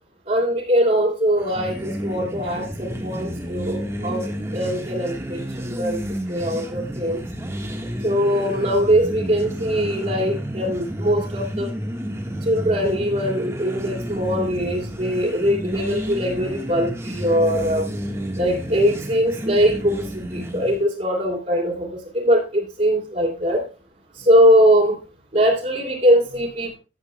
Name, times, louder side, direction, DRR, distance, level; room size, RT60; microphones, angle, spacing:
voice 1, 0.3-6.0 6.3-7.2 8.0-11.7 12.4-17.9 18.4-23.6 24.1-25.0 25.3-26.8, equal, 40° right, -4 dB, 2.8 m, -21 dB
sound 1, 1.4-20.8, equal, 15° right, 1.4 m, -31 dB
15.0 x 8.2 x 2.2 m, 0.32 s
head